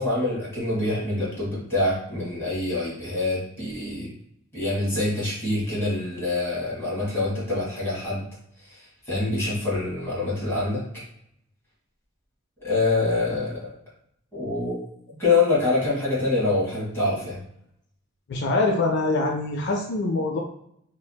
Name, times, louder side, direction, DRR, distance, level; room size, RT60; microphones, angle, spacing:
voice 1, 0.0-4.1 4.5-8.2 9.0-10.8 12.6-13.7 14.3-14.7 15.2-17.4, left 2 dB, 15° left, -8 dB, 1.4 m, -25 dB
voice 2, 18.3-20.4, left 2 dB, 60° left, 1 dB, 0.4 m, -24 dB
3.2 x 2.5 x 2.2 m, 0.72 s
head